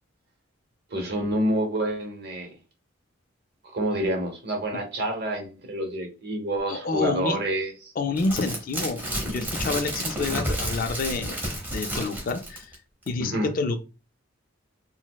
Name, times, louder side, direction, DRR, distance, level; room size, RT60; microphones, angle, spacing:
voice 1, 0.9-2.5 3.7-7.9 13.2-13.5, right 1 dB, 50° right, 0.9 m, -28 dB
voice 2, 6.7-7.4 8.0-11.4 11.7-12.7 13.1-13.8, left 3 dB, 45° left, 0.3 m, -28 dB
sound 1, 8.2-12.7 13.1-13.2, equal, 10° right, 0.9 m, -31 dB
3.9 x 2.0 x 2.2 m
head